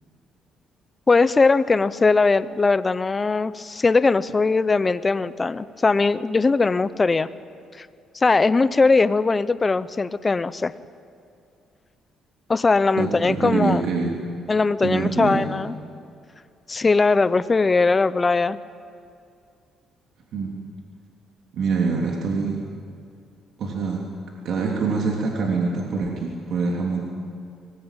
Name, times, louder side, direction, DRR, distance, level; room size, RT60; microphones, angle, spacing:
voice 1, 1.1-7.3 7.8-7.9 8.1-10.7 12.5-13.8 14.5-15.8 16.7-18.6, left 3 dB, 25° left, 15 dB, 0.8 m, -20 dB
voice 2, 13.0-14.2 14.8-15.5 20.3-20.5 21.5-22.7 23.6-24.0 24.4-27.1, right 4 dB, 65° right, -1 dB, 3.1 m, -24 dB
24.0 x 20.0 x 9.1 m, 2.4 s
cardioid pair, 100°, 0 cm